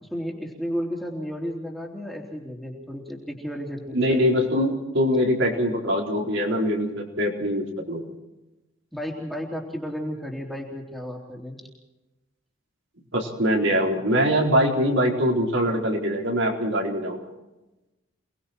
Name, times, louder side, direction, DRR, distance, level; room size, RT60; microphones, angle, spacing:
voice 1, 0.0-4.2 8.9-11.6, equal, ahead, -1 dB, 3.6 m, -33 dB
voice 2, 3.9-8.0 13.1-17.2, equal, 70° right, 0 dB, 4.4 m, -23 dB
29.5 x 20.5 x 4.5 m, 1.0 s
head